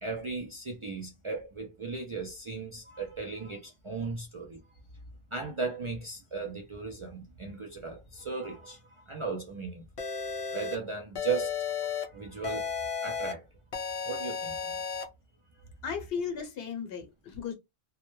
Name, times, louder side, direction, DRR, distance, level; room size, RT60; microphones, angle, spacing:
voice 1, 0.0-4.6 5.3-9.9 10.5-11.5 11.8-12.7 13.0-13.4 14.0-15.0, right 4 dB, 50° right, 0.4 m, -37 dB
sound 1, 10.0-10.8 11.2-12.0 12.4-13.3 13.7-15.0, left 6 dB, 45° left, 0.5 m, -33 dB
voice 2, 15.8-17.5, left 6 dB, 70° left, 0.9 m, -35 dB
2.2 x 2.1 x 3.0 m
omnidirectional pair, 1.0 m